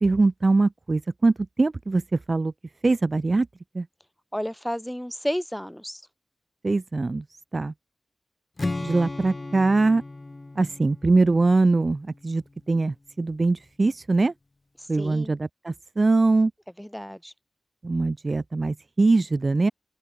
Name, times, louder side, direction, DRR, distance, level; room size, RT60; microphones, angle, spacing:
voice 1, 0.0-2.0 2.3-2.5 2.8-3.5 3.8-3.9 6.6-7.2 7.5-7.7 8.8-10.0 10.6-12.4 12.7-14.3 14.9-16.5 17.8-19.7, right 3 dB, 45° right, 0.3 m, -22 dB
voice 2, 4.3-6.0 14.9-15.3 16.8-17.3, equal, 5° left, 1.8 m, -31 dB
Strum, 8.6-12.7, left 2 dB, 40° left, 0.9 m, -36 dB
open air
cardioid pair, 45°, 0 cm